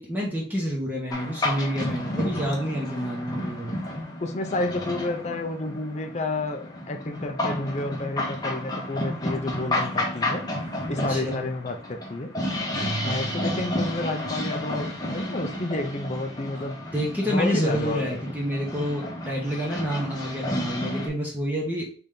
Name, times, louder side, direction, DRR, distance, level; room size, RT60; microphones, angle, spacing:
voice 1, 0.0-3.8 11.1-11.4 13.4-13.5 16.9-21.9, equal, 10° right, -4 dB, 1.0 m, -28 dB
sound 1, 1.1-21.1, left 1 dB, 20° left, 0.9 m, -31 dB
voice 2, 4.2-10.4 10.9-12.3 13.1-16.8 17.2-18.2, left 2 dB, 40° left, 6 dB, 0.5 m, -30 dB
Keyboard (musical), 12.8-15.1, right 3 dB, 45° right, 0.7 m, -37 dB
4.0 x 3.4 x 3.7 m, 0.42 s
head